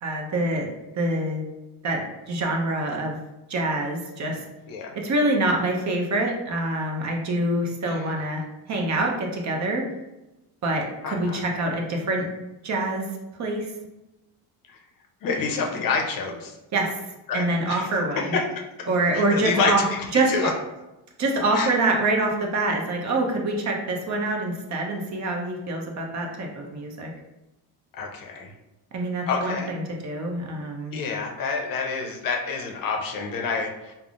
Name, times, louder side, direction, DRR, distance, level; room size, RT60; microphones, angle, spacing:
voice 1, 0.0-0.7 0.9-1.4 1.8-3.2 3.5-4.4 5.0-9.9 10.6-12.3 12.6-13.1 13.4-13.7 16.7-17.0 17.3-18.4 18.9-19.9 20.1-20.5 21.2-27.1 28.9-31.0, right 2 dB, 40° right, 1 dB, 0.6 m, -25 dB
voice 2, 11.0-11.4 15.2-16.5 17.3-17.9 18.2-18.4 19.1-19.7 20.3-20.5 21.5-21.7 27.9-28.5 29.3-29.7 30.9-33.9, left 5 dB, 50° left, 2 dB, 0.6 m, -28 dB
3.5 x 2.1 x 2.4 m, 0.98 s
cardioid pair, 90°, 42 cm